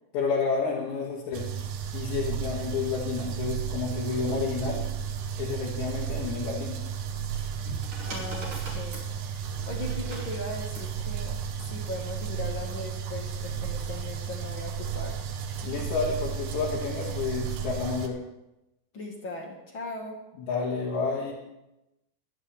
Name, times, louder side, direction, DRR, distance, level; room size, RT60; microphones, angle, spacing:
voice 1, 0.1-1.5 1.9-4.8 5.4-6.8 15.6-18.2 20.4-21.3, left 5 dB, 80° left, -7 dB, 4.5 m, -30 dB
sound 1, 1.3-18.1, right 8 dB, 75° right, 1.9 m, -33 dB
sound 2, 7.2-10.9 12.0-12.4, right 2 dB, 50° right, 6.0 m, -42 dB
voice 2, 8.1-9.0 9.3-11.3 11.6-15.2 18.9-20.2, left 2 dB, 50° left, 0 dB, 1.5 m, -38 dB
25.0 x 10.0 x 3.5 m, 0.94 s
omnidirectional pair, 4.9 m